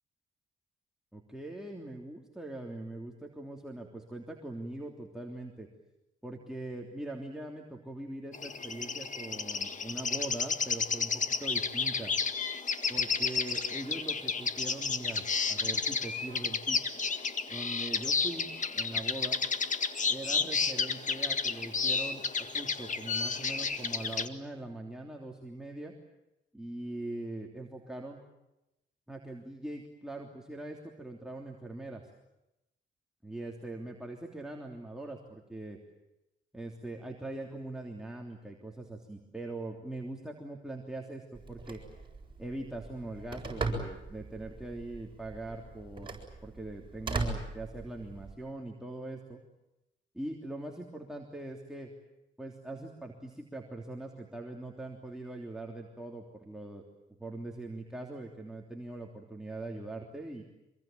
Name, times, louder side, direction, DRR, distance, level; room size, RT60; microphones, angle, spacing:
voice 1, 1.1-5.7 6.2-12.1 12.9-16.8 17.5-18.5 18.7-19.4 20.1-25.9 26.5-28.2 29.1-32.0 33.2-35.8 36.5-41.8 42.4-49.4 50.1-51.9 52.4-56.8 57.2-60.4, right 2 dB, 5° right, 0 dB, 3.2 m, -42 dB
sound 1, 8.3-24.3, left 5 dB, 40° left, 1.8 m, -32 dB
Telephone, 41.3-48.3, right 3 dB, 25° right, 7.5 m, -39 dB
25.5 x 22.5 x 9.2 m, 0.93 s
cardioid pair, 90°, 20 cm